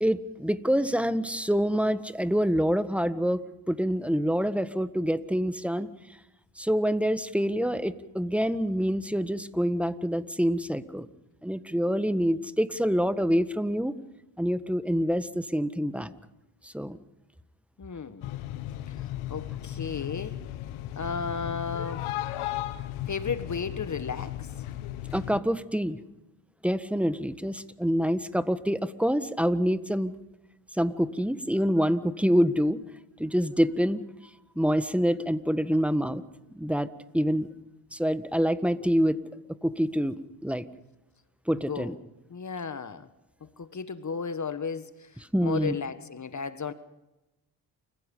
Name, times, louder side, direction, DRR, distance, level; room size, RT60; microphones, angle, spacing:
voice 1, 0.0-5.9 6.6-11.1 11.4-14.0 14.4-16.1 16.6-17.0 25.1-26.0 26.6-30.1 30.8-32.8 33.2-34.1 34.5-36.2 36.5-36.9 37.1-37.5 37.9-39.2 39.5-40.7 41.5-41.9 45.3-45.8, equal, ahead, 1.5 m, -26 dB
voice 2, 17.8-18.3 18.9-19.0 19.3-20.4 20.9-22.1 23.1-24.4 41.7-42.0 42.3-43.1 43.6-45.1 45.4-46.7, left 5 dB, 35° left, 1.5 m, -34 dB
sound 1, 18.2-25.4, left 13 dB, 75° left, 1.2 m, -36 dB
29.0 x 16.0 x 5.5 m
hypercardioid pair, 50°, 50 cm